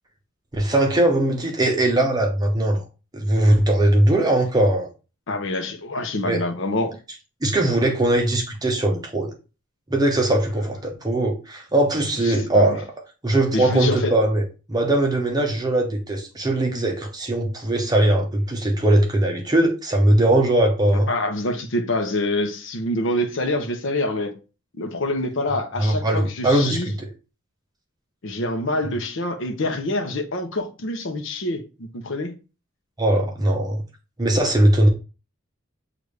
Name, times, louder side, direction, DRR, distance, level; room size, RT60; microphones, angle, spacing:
voice 1, 0.5-2.8 3.1-4.9 6.2-6.4 7.4-9.3 9.9-12.8 13.2-14.4 14.7-21.1 25.8-27.1 33.0-33.8 34.2-34.9, right 1 dB, 20° right, 0.7 m, -20 dB
voice 2, 5.3-6.9 12.2-12.8 13.5-14.1 21.1-24.3 24.8-26.9 28.2-32.3, left 1 dB, 65° left, 0.7 m, -26 dB
6.7 x 2.5 x 3.2 m
head